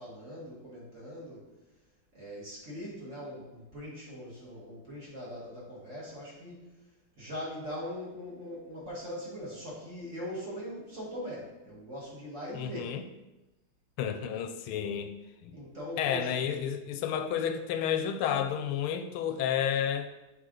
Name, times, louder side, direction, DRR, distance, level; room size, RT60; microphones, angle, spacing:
voice 1, 0.0-1.5 2.1-6.6 7.2-12.9 15.5-16.5, equal, 35° right, -5 dB, 1.9 m, -41 dB
voice 2, 12.5-13.0 14.0-15.1 15.4-15.6 16.0-20.1, left 9 dB, 90° left, 9 dB, 1.5 m, -31 dB
6.6 x 4.7 x 3.8 m, 1.0 s
omnidirectional pair, 2.3 m